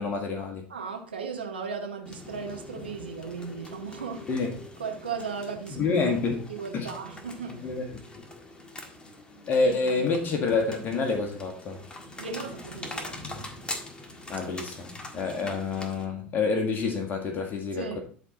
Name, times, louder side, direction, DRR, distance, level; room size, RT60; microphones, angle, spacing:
voice 1, 0.0-0.7 4.3-4.5 5.7-6.5 6.7-6.9 7.5-7.8 9.5-11.8 14.3-18.0, left 4 dB, 35° left, 1.8 m, -28 dB
voice 2, 0.7-4.3 4.8-6.2 6.5-7.7 8.8-8.9 9.4-10.3 12.2-13.2 17.7-18.0, right 5 dB, 85° right, 1.5 m, -37 dB
sound 1, 2.0-16.0, left 2 dB, 15° left, 1.7 m, -43 dB
12.5 x 4.3 x 3.8 m
figure-of-eight pair, 80°, 5 cm